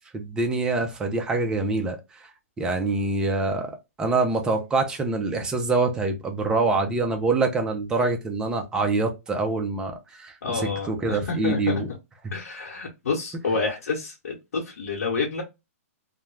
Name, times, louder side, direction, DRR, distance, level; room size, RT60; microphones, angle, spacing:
voice 1, 0.1-2.0 2.6-11.9, right 3 dB, 10° right, 0.4 m, -25 dB
voice 2, 10.4-11.7 12.3-15.4, left 4 dB, 80° left, 0.9 m, -29 dB
2.3 x 2.1 x 3.1 m
hypercardioid pair, 155°, 8 cm